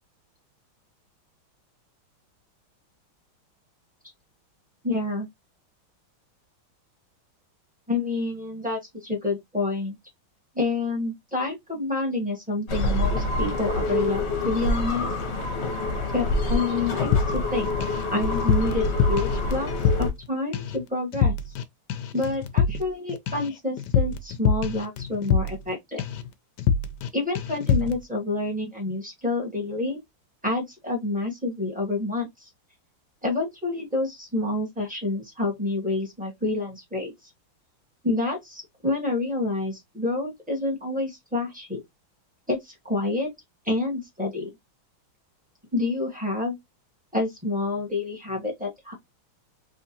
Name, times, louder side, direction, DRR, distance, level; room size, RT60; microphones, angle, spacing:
voice 1, 4.8-5.3 7.9-10.0 10.5-15.1 16.1-17.7 18.0-19.7 20.0-21.3 22.1-26.0 27.1-30.0 30.4-32.5 33.2-37.1 38.0-41.8 42.5-43.3 43.6-44.5 45.7-46.5 47.1-48.9, left 2 dB, 5° right, 0.7 m, -28 dB
sound 1, 12.7-20.1, left 2 dB, 50° left, 0.9 m, -26 dB
sound 2, 17.1-18.0 18.3-20.3 20.5-20.8 21.1-21.6 21.9-25.7 26.0-26.3 26.6-27.1 27.4-28.0, left 6 dB, 75° left, 1.0 m, -25 dB
3.6 x 3.1 x 2.8 m
omnidirectional pair, 2.2 m